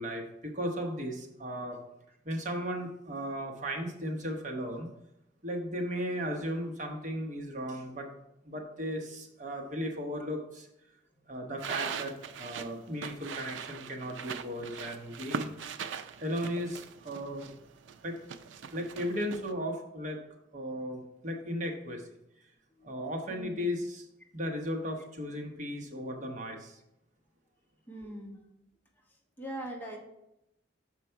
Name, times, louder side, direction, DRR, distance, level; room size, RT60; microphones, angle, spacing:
voice 1, 0.0-1.8 2.2-4.9 5.4-8.1 8.4-10.7 11.3-15.5 16.2-17.5 18.0-18.1 18.7-20.2 20.5-22.1 22.8-24.0 24.3-26.8, equal, 45° right, 2 dB, 1.0 m, -36 dB
sound 1, 11.6-19.5, right 6 dB, 90° right, 0.4 m, -41 dB
voice 2, 23.3-23.6 27.9-28.4 29.4-30.0, right 1 dB, 10° left, -1 dB, 1.0 m, -41 dB
6.7 x 5.0 x 4.5 m, 0.84 s
head